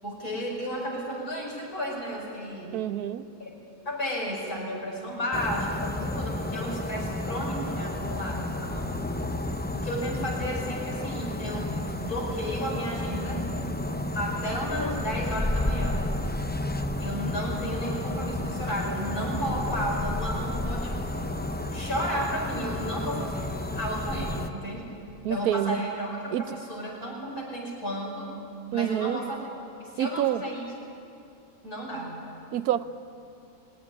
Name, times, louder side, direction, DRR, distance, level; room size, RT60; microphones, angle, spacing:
voice 1, 0.0-2.8 3.4-3.5 3.9-9.0 9.7-13.4 14.1-16.1 17.0-21.0 21.7-23.5 23.7-24.9 25.3-28.3 28.7-29.4 29.8-30.7 31.6-32.2, equal, 85° left, -3 dB, 5.8 m, -33 dB
voice 2, 2.7-3.3 25.2-25.8 26.3-26.6 28.7-29.2 30.0-30.4 32.5-32.8, right 12 dB, 85° right, 14 dB, 1.2 m, -27 dB
sound 1, 5.3-24.5, left 1 dB, 15° left, 0.3 m, -31 dB
19.5 x 17.5 x 9.8 m, 2.6 s
omnidirectional pair, 1.6 m